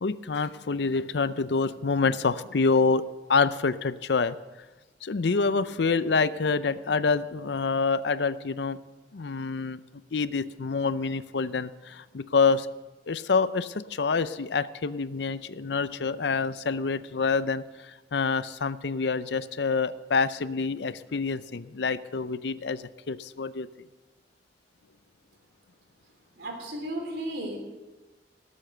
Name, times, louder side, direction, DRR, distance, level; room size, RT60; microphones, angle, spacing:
voice 1, 0.0-3.0 3.3-4.4 5.0-8.8 9.1-9.8 10.1-12.7 13.1-23.7, left 4 dB, 65° left, 15 dB, 0.6 m, -27 dB
voice 2, 26.4-27.6, right 1 dB, 65° right, 2 dB, 3.4 m, -34 dB
18.5 x 8.3 x 6.6 m, 1.2 s
head